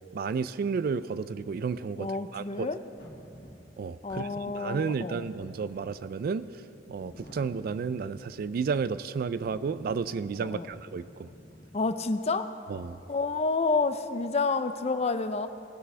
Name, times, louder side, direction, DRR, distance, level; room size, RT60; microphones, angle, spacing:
voice 1, 0.1-2.1 2.3-2.7 3.8-4.3 4.5-6.5 6.9-11.3 12.7-13.0, right 5 dB, 55° right, 15 dB, 0.3 m, -32 dB
voice 2, 2.0-2.8 4.0-5.3 10.4-10.7 11.7-12.5 13.1-15.5, left 3 dB, 35° left, 11 dB, 0.5 m, -29 dB
sound 1, 3.0-8.8 9.3-11.7, equal, 60° left, 1.9 m, -51 dB
18.0 x 6.2 x 5.5 m, 2.8 s
head